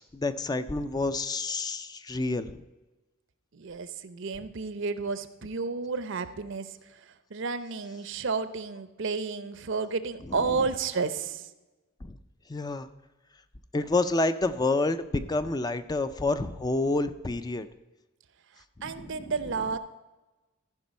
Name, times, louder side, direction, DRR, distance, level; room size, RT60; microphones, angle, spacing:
voice 1, 0.0-2.6 10.3-10.6 12.0-12.2 12.5-12.9 13.7-17.7 18.8-19.2, left 2 dB, 20° left, 11 dB, 0.4 m, -29 dB
voice 2, 3.5-11.5 18.8-19.8, right 4 dB, 60° right, 13 dB, 0.6 m, -32 dB
14.5 x 5.3 x 5.3 m, 1.1 s
head